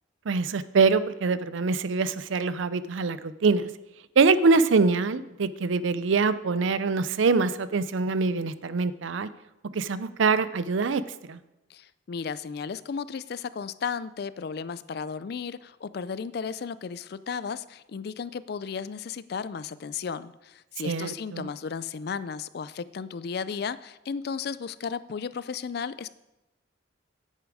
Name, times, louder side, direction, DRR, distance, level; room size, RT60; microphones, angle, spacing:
voice 1, 0.3-3.7 4.2-9.3 9.7-11.0 11.3-11.4 20.8-21.5, right 4 dB, 75° right, 15 dB, 0.5 m, -24 dB
voice 2, 11.7-26.1, left 6 dB, 55° left, 16 dB, 0.4 m, -34 dB
9.5 x 8.5 x 4.9 m, 0.98 s
head